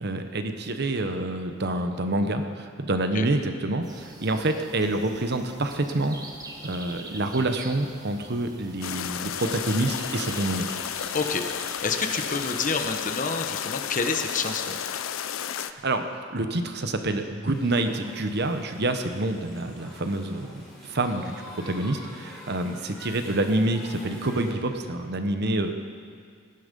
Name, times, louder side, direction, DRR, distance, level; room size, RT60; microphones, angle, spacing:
voice 1, 0.0-6.2 6.6-10.7 15.6-16.0 16.3-25.8, right 2 dB, 55° right, 7 dB, 1.0 m, -27 dB
sound 1, 3.8-13.0, right 2 dB, 20° right, 1.3 m, -44 dB
sound 2, 8.8-15.7, left 9 dB, 80° left, 0.5 m, -32 dB
voice 2, 11.1-14.8, left 4 dB, 40° left, 5 dB, 1.1 m, -28 dB
sound 3, 17.5-24.5, left 1 dB, ahead, 3.8 m, -46 dB
17.5 x 12.0 x 5.4 m, 2.1 s
head